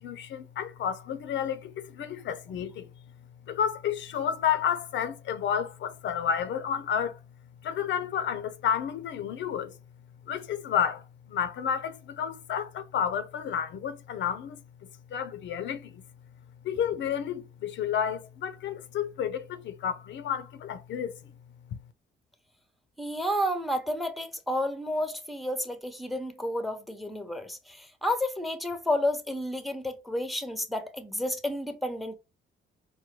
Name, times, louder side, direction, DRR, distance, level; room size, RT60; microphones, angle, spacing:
voice 1, 0.0-2.9 3.5-7.2 7.6-9.7 10.3-14.6 15.1-16.0 16.6-21.1 21.7-21.8, left 8 dB, 70° left, 0.5 m, -31 dB
voice 2, 23.0-32.2, left 1 dB, ahead, 0.7 m, -31 dB
4.6 x 2.2 x 3.1 m
cardioid pair, 90°, 20 cm